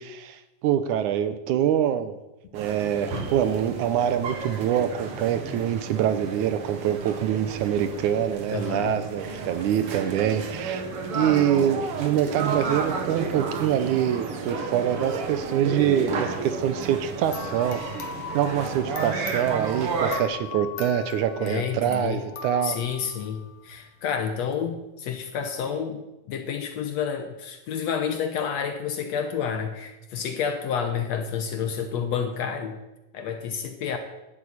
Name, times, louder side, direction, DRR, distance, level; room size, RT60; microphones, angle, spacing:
voice 1, 0.0-2.1 2.5-10.8 11.1-17.8 18.3-22.8, right 10 dB, 75° right, 11 dB, 2.1 m, -25 dB
sound 1, 2.5-20.2, right 4 dB, 50° right, 2.0 m, -32 dB
voice 2, 8.5-9.0 21.4-22.2 22.6-32.8 33.1-34.0, left 7 dB, 65° left, 7 dB, 1.9 m, -29 dB
sound 2, 17.3-23.8, left 7 dB, 80° left, 3.1 m, -39 dB
11.5 x 8.8 x 8.6 m, 1.0 s
omnidirectional pair, 3.8 m